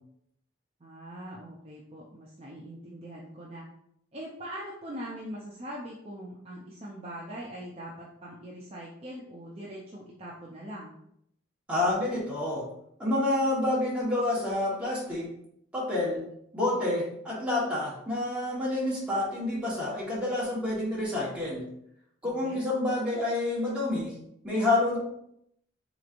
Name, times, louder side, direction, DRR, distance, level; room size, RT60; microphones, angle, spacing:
voice 1, 0.8-3.6 4.1-10.9 22.4-22.6, equal, 30° right, -5 dB, 0.5 m, -42 dB
voice 2, 11.7-12.6 13.0-15.3 15.7-16.2 16.5-21.7 22.2-24.1 24.4-25.0, left 2 dB, 5° right, -7 dB, 1.2 m, -28 dB
4.1 x 3.1 x 2.5 m, 0.74 s
head